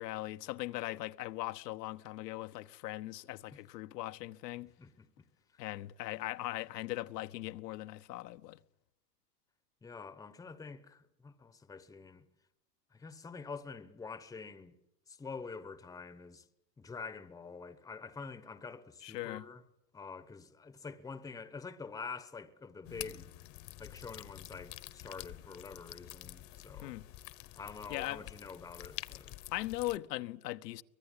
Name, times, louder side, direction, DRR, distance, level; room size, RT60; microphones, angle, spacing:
voice 1, 0.0-4.7 5.6-8.6 19.0-19.4 26.8-27.0 27.9-28.2 29.5-30.8, left 17 dB, 70° left, 1.1 m, -39 dB
voice 2, 9.8-12.3 12.9-14.7 15.1-16.5 16.8-19.6 19.9-23.3 23.8-27.0 27.5-29.3, left 4 dB, 5° left, 1.0 m, -46 dB
sound 1, 22.8-30.0, left 16 dB, 35° left, 1.1 m, -48 dB
24.0 x 19.5 x 9.8 m
supercardioid pair, 140°, 50 cm